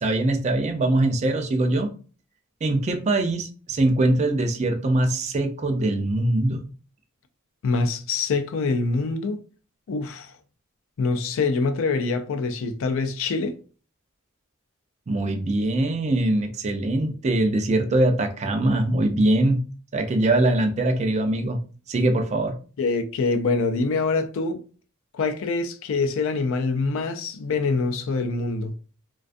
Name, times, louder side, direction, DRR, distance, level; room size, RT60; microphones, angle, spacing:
voice 1, 0.0-1.9 2.6-6.7 15.1-19.6 19.9-21.6 21.9-22.6, right 2 dB, 30° right, 0.4 m, -22 dB
voice 2, 7.6-9.4 9.9-10.3 11.0-13.5 22.8-24.6 25.1-28.7, left 4 dB, 65° left, 0.4 m, -25 dB
2.4 x 2.2 x 2.5 m
head